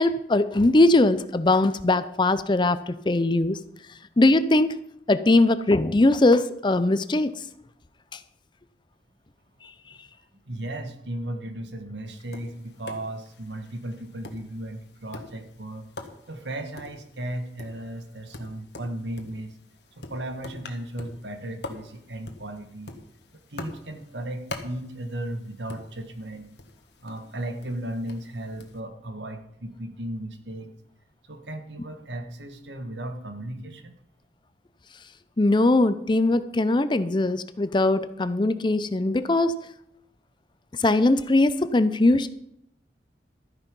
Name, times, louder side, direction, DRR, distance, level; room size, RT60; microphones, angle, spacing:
voice 1, 0.0-3.6 4.2-4.8 5.1-7.3 35.4-39.5 40.8-42.3, left 2 dB, 25° left, 13 dB, 0.5 m, -20 dB
voice 2, 10.5-15.9 16.3-19.6 20.0-22.9 23.5-26.5 27.0-30.7 31.3-34.0, right 1 dB, 75° right, 7 dB, 1.6 m, -35 dB
Tap, 12.1-28.8, left 2 dB, 65° left, 1.4 m, -45 dB
13.0 x 9.7 x 5.3 m, 0.76 s
head